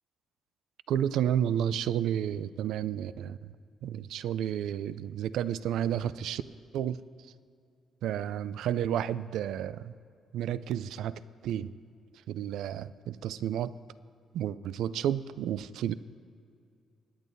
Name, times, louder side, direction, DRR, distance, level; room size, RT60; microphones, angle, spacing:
voice 1, 0.9-3.5 3.8-6.4 6.7-7.0 8.0-10.0 10.3-11.7 12.3-13.7 14.3-15.9, right 10 dB, 80° right, 16 dB, 0.3 m, -31 dB
22.0 x 9.0 x 2.6 m, 2.3 s
cardioid pair, 90°, 0 cm